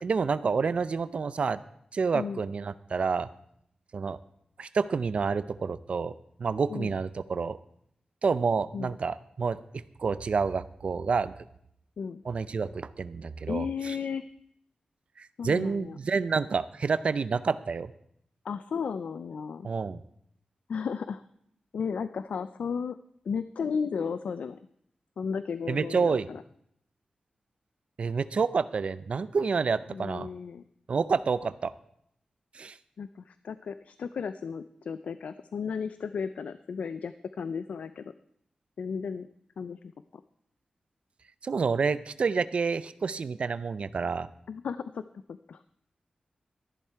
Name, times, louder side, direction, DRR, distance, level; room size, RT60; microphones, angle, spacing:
voice 1, 0.0-1.6 1.9-3.3 3.9-4.2 4.6-6.1 6.4-7.6 8.2-9.6 10.0-11.3 12.3-14.0 15.2-17.9 19.6-20.0 25.7-26.3 28.0-30.3 30.9-31.7 32.5-32.8 41.4-44.3, right 5 dB, 60° right, 15 dB, 0.5 m, -28 dB
voice 2, 13.5-14.2 15.4-16.0 18.4-19.7 20.7-21.2 21.7-23.0 23.3-24.6 25.2-26.4 29.9-30.6 33.0-38.1 38.8-39.3 39.6-40.2 44.5-45.0 45.3-45.6, left 6 dB, 90° left, 13 dB, 0.4 m, -34 dB
13.5 x 11.0 x 4.5 m, 0.72 s
wide cardioid pair, 120°, 2 cm